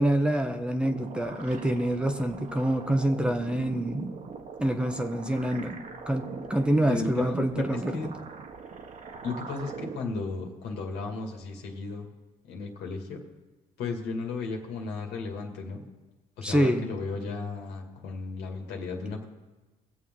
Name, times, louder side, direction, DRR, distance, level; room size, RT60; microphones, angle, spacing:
voice 1, 0.0-4.2 4.6-5.8 6.1-8.0 16.4-16.9, right 1 dB, 5° right, 6 dB, 0.9 m, -26 dB
sound 1, 0.8-10.0, right 5 dB, 45° right, 1.3 m, -41 dB
voice 2, 6.9-8.1 9.2-12.1 12.4-13.2 13.8-15.8 16.4-19.2, left 4 dB, 80° left, 1 dB, 2.3 m, -35 dB
23.0 x 7.8 x 3.9 m, 1.2 s
cardioid pair, 110°, 17 cm